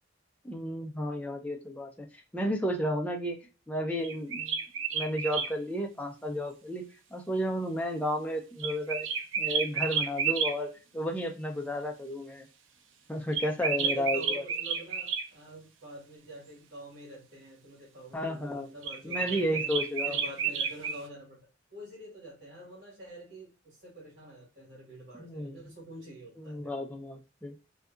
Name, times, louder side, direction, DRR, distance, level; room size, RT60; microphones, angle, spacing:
voice 1, 0.4-3.4 3.7-4.6 4.9-6.9 7.1-9.1 9.4-12.4 13.1-14.4 18.1-18.7 19.0-20.2 25.2-25.6 26.4-27.5, equal, 5° left, 2 dB, 0.4 m, -32 dB
sound 1, 4.0-5.5 8.6-10.5 13.3-15.3 18.8-21.0, right 6 dB, 85° right, 0.5 m, -31 dB
voice 2, 13.7-19.7 20.0-21.4 21.7-26.7, right 2 dB, 65° right, -5 dB, 1.3 m, -46 dB
2.7 x 2.3 x 2.3 m, 0.31 s
head